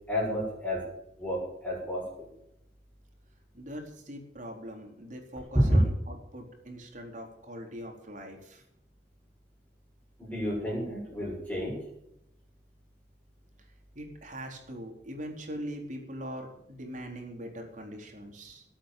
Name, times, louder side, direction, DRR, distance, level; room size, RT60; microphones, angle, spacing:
voice 1, 0.1-0.8 1.2-2.3 5.5-5.8 10.2-11.8, equal, 10° left, -7 dB, 6.7 m, -29 dB
voice 2, 3.5-8.6 14.0-18.6, equal, 45° right, 2 dB, 4.2 m, -42 dB
20.0 x 8.8 x 7.4 m, 0.78 s
head